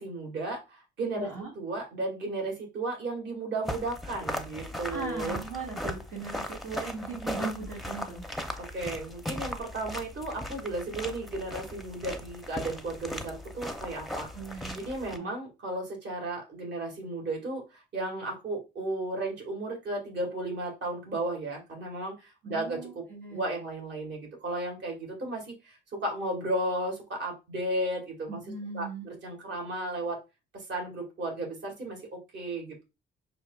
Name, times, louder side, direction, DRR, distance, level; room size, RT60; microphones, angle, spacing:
voice 1, 0.0-5.4 8.6-14.3 14.5-23.0 23.3-28.4 28.7-30.2 30.5-32.8, right 2 dB, 60° right, 0 dB, 2.0 m, -34 dB
voice 2, 1.2-1.5 4.9-8.2 14.3-15.3 22.4-23.4 28.3-29.1, right 4 dB, 80° right, -4 dB, 1.8 m, -38 dB
sound 1, 3.7-15.2, left 1 dB, ahead, 0.6 m, -38 dB
6.1 x 2.8 x 2.3 m, 0.26 s
cardioid pair, 90°, 20 cm